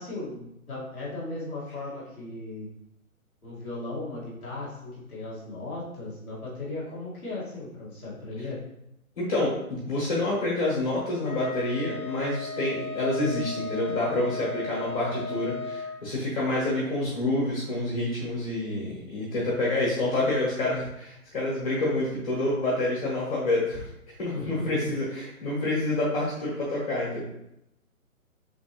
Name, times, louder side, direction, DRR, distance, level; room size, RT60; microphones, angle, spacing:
voice 1, 0.0-2.7 3.4-8.6 24.3-24.9, left 2 dB, 5° left, -21 dB, 0.6 m, -36 dB
voice 2, 9.2-23.9 24.2-27.2, left 2 dB, 25° left, -8 dB, 1.0 m, -28 dB
Wind instrument woodwind instrument, 11.2-16.0, left 4 dB, 80° left, 0.5 m, -36 dB
3.3 x 3.0 x 2.9 m, 0.83 s
hypercardioid pair, 165°, 43 cm